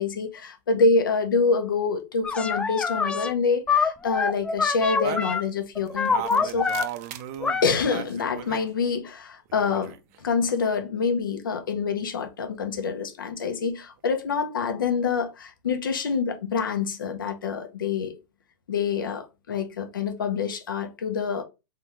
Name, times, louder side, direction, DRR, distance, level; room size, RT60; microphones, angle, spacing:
voice 1, 0.0-6.7 7.6-18.1 18.7-21.4, left 5 dB, 85° left, 1.0 m, -26 dB
sound 1, 2.2-3.3 3.7-5.4 5.8-6.9 7.4-7.6, left 5 dB, 10° left, 0.4 m, -25 dB
sound 2, 5.0-8.7 9.5-10.2, right 12 dB, 45° right, 0.5 m, -37 dB
3.7 x 3.5 x 3.2 m
hypercardioid pair, 130°, 11 cm